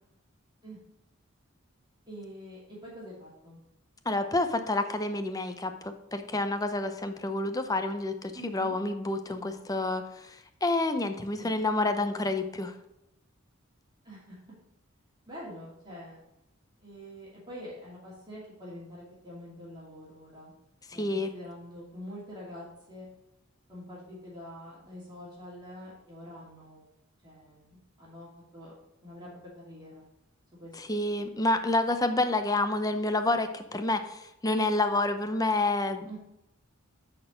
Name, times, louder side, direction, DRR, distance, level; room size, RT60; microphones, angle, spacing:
voice 1, 2.1-3.6 8.3-8.8 11.3-11.6 14.0-14.4 15.3-16.2 16.8-20.5 20.9-23.1 23.7-26.8 27.2-28.7 29.0-29.3 29.6-30.1 30.6-30.8 36.1-36.2, equal, 20° right, -7 dB, 2.5 m, -45 dB
voice 2, 4.1-12.7 20.9-21.3 30.8-36.1, left 2 dB, 15° left, 8 dB, 0.6 m, -29 dB
10.0 x 4.4 x 5.1 m, 0.87 s
head